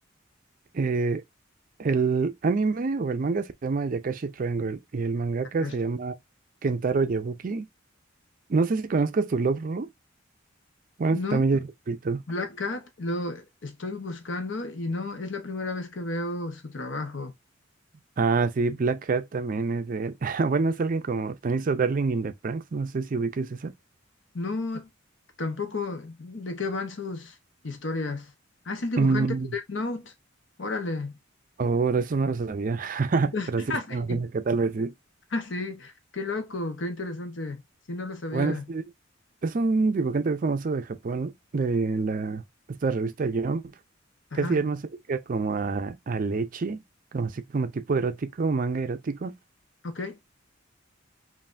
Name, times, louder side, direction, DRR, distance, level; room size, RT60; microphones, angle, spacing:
voice 1, 0.7-1.2 1.8-6.1 6.6-7.7 8.5-9.9 11.0-11.6 11.9-12.2 18.2-23.7 29.0-29.6 31.6-33.6 33.9-34.9 38.3-38.8 39.4-42.4 42.7-43.7 44.3-44.8 45.1-46.8 47.1-49.4, right 4 dB, 45° right, 0.4 m, -26 dB
voice 2, 11.1-11.4 12.3-17.3 24.3-24.9 25.4-27.4 27.6-28.3 28.6-30.1 30.6-31.2 33.3-34.2 35.3-37.6 37.9-38.7 44.3-44.6 49.9-50.2, left 2 dB, 65° left, 1.0 m, -32 dB
5.5 x 2.5 x 2.5 m
head